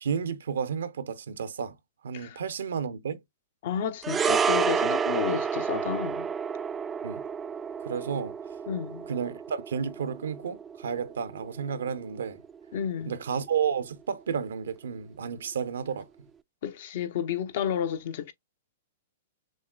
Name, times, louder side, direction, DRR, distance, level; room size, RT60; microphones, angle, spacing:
voice 1, 0.0-1.8 2.0-3.2 7.0-7.2 7.8-8.3 9.1-12.4 13.1-16.1, right 7 dB, 80° right, 0.6 m, -32 dB
voice 2, 3.6-6.3 8.7-9.1 12.7-13.1 16.6-18.3, left 8 dB, 60° left, 0.7 m, -31 dB
sound 1, 4.0-12.5 12.8-13.0, right 6 dB, 20° right, 0.3 m, -30 dB
6.2 x 2.1 x 2.4 m
hypercardioid pair, 125°, 0 cm